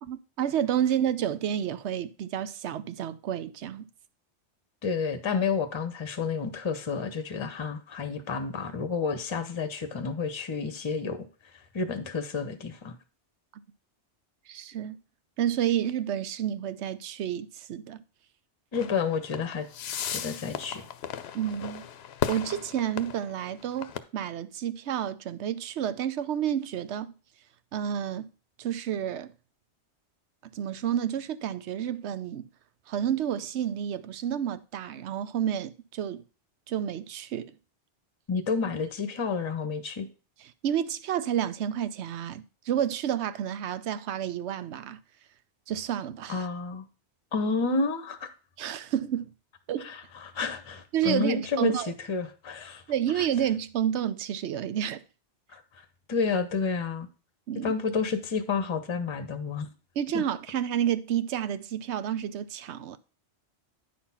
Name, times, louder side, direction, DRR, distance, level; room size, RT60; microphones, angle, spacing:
voice 1, 0.0-3.8 13.5-13.6 14.5-15.0 15.4-18.0 21.3-21.8 22.3-27.1 27.7-28.3 28.6-29.3 30.5-32.5 32.9-36.2 36.7-37.5 40.6-45.0 45.7-46.5 48.6-49.3 49.7-49.9 50.9-51.9 52.9-55.0 57.5-57.7 60.0-63.0, right 10 dB, 75° right, 0.9 m, -30 dB
voice 2, 4.8-11.3 11.7-13.0 18.7-19.7 20.0-20.8 38.3-40.1 46.3-46.9 47.3-48.3 49.8-51.7 52.1-52.8 53.1-53.3 55.5-55.6 56.1-57.1 57.5-59.7 60.1-60.2, left 5 dB, 30° left, 0.8 m, -30 dB
sound 1, 18.7-24.0, left 9 dB, 65° left, 0.8 m, -36 dB
9.4 x 4.3 x 5.6 m
omnidirectional pair, 1.2 m